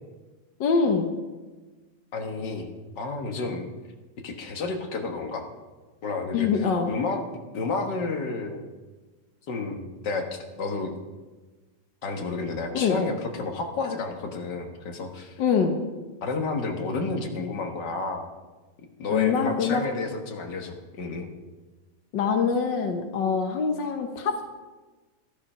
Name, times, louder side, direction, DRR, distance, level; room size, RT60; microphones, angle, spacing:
voice 1, 0.6-1.1 6.3-6.9 12.7-13.0 15.4-15.8 19.1-19.8 22.1-24.5, left 6 dB, 75° left, 5 dB, 1.0 m, -24 dB
voice 2, 2.1-2.7 3.0-3.7 4.2-5.5 6.0-7.2 7.5-8.6 9.5-10.9 12.0-15.3 16.2-18.2 19.0-21.3, left 3 dB, 45° left, 3 dB, 1.5 m, -31 dB
14.0 x 11.5 x 5.6 m, 1.3 s
omnidirectional pair, 3.4 m